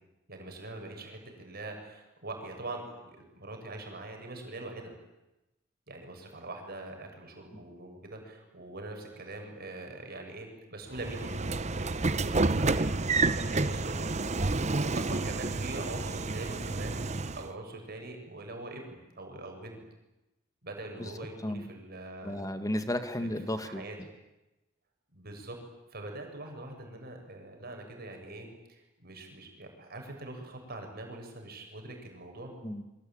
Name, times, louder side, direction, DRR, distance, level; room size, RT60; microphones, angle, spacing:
voice 1, 0.3-4.9 5.9-12.9 13.3-14.2 14.5-17.0 17.4-19.8 20.6-22.4 23.2-23.3 23.6-24.0 25.1-25.6 25.9-32.5, right 2 dB, 50° right, 3 dB, 7.2 m, -43 dB
Train / Sliding door, 10.9-17.5, right 3 dB, 35° right, 1.0 m, -29 dB
voice 2, 22.2-23.8 32.6-32.8, left 1 dB, 20° left, 9 dB, 2.1 m, -33 dB
27.0 x 24.5 x 9.0 m, 0.99 s
head